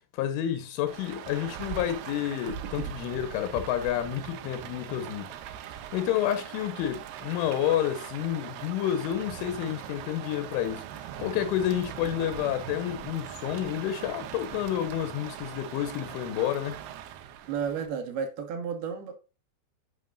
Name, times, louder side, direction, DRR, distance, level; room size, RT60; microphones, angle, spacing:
voice 1, 0.1-5.3 5.9-10.8 11.2-16.8, left 11 dB, 85° left, 3.5 m, -29 dB
Rain, 0.9-17.9, right 10 dB, 80° right, 2.4 m, -41 dB
voice 2, 17.5-19.2, right 6 dB, 65° right, 3.0 m, -32 dB
9.5 x 7.4 x 2.5 m
omnidirectional pair, 5.6 m